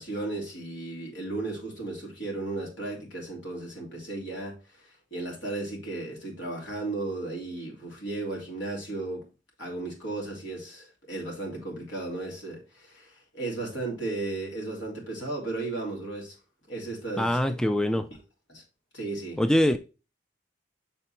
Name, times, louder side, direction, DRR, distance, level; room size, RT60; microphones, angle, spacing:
voice 1, 0.0-9.2 9.6-16.3 16.7-17.4 18.5-18.6 18.9-19.4, right 2 dB, 85° left, 3.3 m, -35 dB
voice 2, 17.2-18.1 19.4-19.8, left 1 dB, 5° left, 0.3 m, -23 dB
6.9 x 4.5 x 4.3 m
head